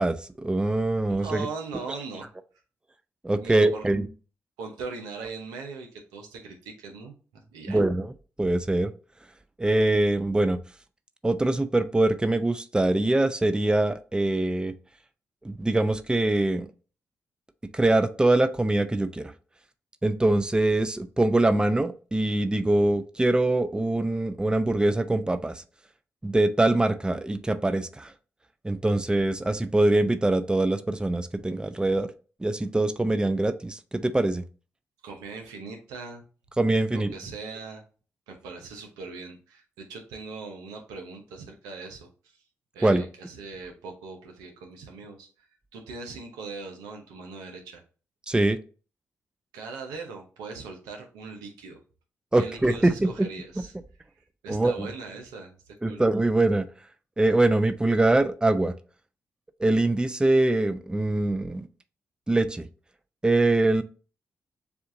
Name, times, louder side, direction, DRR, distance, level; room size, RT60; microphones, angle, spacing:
voice 1, 0.0-1.5 1.9-2.0 3.2-4.1 7.7-8.1 8.4-8.9 9.6-10.6 11.2-14.7 15.4-16.7 17.7-19.3 20.0-25.6 26.2-28.1 28.6-32.1 32.4-34.4 36.6-37.1 42.8-43.0 48.3-48.6 52.3-53.3 53.6-53.7 54.5-54.9 55.8-56.7 57.2-58.7 59.6-61.7 62.3-62.7 63.2-63.8, right 2 dB, 15° right, 11 dB, 0.5 m, -23 dB
voice 2, 1.1-2.3 3.4-3.9 4.6-7.8 35.0-36.2 36.9-37.8 38.3-42.1 42.7-45.3 45.7-47.8 49.5-51.8 52.4-53.7 54.4-55.6 55.9-56.0, right 4 dB, 90° right, 3 dB, 0.8 m, -40 dB
6.9 x 2.5 x 2.5 m, 0.38 s
hypercardioid pair, 40°, 6 cm